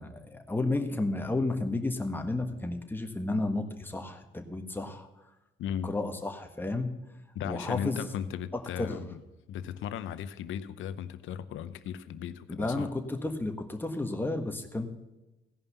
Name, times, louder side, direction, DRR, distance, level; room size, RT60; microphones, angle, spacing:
voice 1, 0.0-5.1 5.8-6.9 7.4-8.1 8.8-9.1 12.6-14.9, left 2 dB, 10° left, 1.5 m, -32 dB
voice 2, 5.6-5.9 7.3-9.2 9.5-12.9, left 9 dB, 80° left, 0.8 m, -36 dB
16.5 x 5.5 x 6.8 m
cardioid pair, 90°, 20 cm